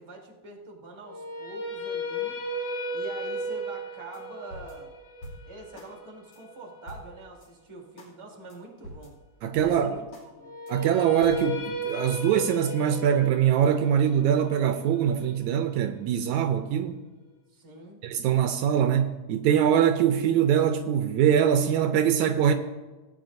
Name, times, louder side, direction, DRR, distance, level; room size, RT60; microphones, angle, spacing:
voice 1, 0.0-2.4 2.9-4.9 5.4-9.1 9.6-10.6 17.5-18.0, right 2 dB, 10° right, 1.6 m, -45 dB
sound 1, 1.0-7.1 10.4-16.5, left 1 dB, 75° left, 3.5 m, -35 dB
sound 2, 4.1-4.2 4.5-5.9 6.3-6.4 6.9-7.5 8.0-8.1 8.5-8.6 8.8-10.3 10.7-10.8 11.2-12.4, equal, 60° left, 3.9 m, -46 dB
voice 2, 9.4-10.0 10.7-17.0 18.0-22.5, right 9 dB, 80° right, 1.9 m, -23 dB
18.0 x 9.7 x 2.7 m
omnidirectional pair, 3.5 m